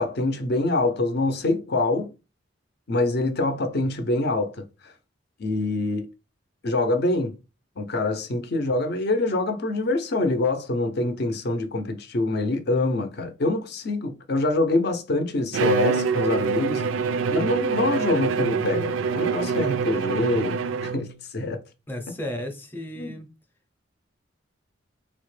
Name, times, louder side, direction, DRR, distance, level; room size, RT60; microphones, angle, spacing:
voice 1, 0.0-2.1 2.9-4.9 5.4-6.1 6.6-7.4 7.8-16.8 17.3-21.6 23.0-23.1, left 2 dB, 55° left, 0.5 m, -25 dB
Bowed string instrument, 15.5-21.2, right 5 dB, 80° right, 0.3 m, -25 dB
voice 2, 21.9-23.3, left 1 dB, 10° left, 0.6 m, -34 dB
3.4 x 2.1 x 3.1 m
head